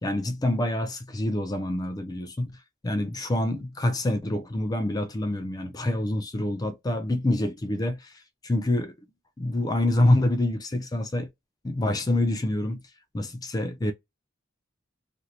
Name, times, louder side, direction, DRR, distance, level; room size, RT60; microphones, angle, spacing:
voice 1, 0.0-2.5 2.8-8.1 8.4-8.9 9.4-11.3 11.6-12.8 13.1-13.9, left 1 dB, 20° left, 0.4 m, -26 dB
2.7 x 2.6 x 3.0 m
head